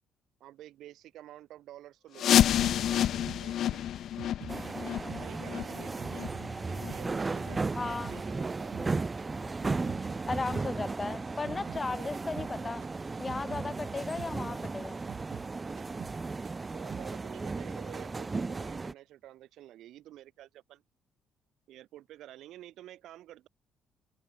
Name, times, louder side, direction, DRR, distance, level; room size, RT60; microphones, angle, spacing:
voice 1, 0.4-3.9 5.1-6.3 6.7-8.8 11.6-12.1 16.5-20.8 21.7-23.5, right 13 dB, 75° right, 5.4 m, -50 dB
sound 1, 2.2-7.7 8.1-8.2 8.7-8.8 9.5-9.6 10.1-10.2, left 11 dB, 65° left, 0.6 m, -29 dB
sound 2, 2.6-5.3 5.5-8.2 8.5-11.9 12.1-12.5 12.8-15.5 15.8-16.2 16.4-17.1, right 9 dB, 55° right, 5.6 m, -47 dB
sound 3, 4.5-18.9, right 3 dB, 20° right, 0.3 m, -35 dB
voice 2, 7.8-8.1 10.3-12.8 13.2-15.0, left 3 dB, 25° left, 0.7 m, -35 dB
cardioid pair, 115°, 0 cm